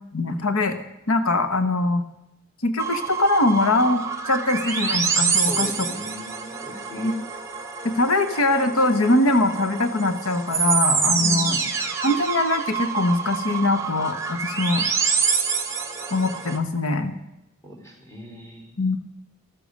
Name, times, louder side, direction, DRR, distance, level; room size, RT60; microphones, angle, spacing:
voice 1, 0.1-0.7 1.1-2.0 2.6-5.7 7.0-7.1 7.8-11.6 12.0-14.9 16.1-17.1 18.8-19.0, left 2 dB, 75° left, 8 dB, 1.2 m, -22 dB
sound 1, 2.8-16.6, right 6 dB, 15° right, 1.5 m, -26 dB
voice 2, 5.4-7.2 11.2-11.7 17.6-18.8, left 1 dB, 15° left, 1 dB, 4.9 m, -37 dB
14.0 x 13.5 x 6.5 m, 0.89 s
head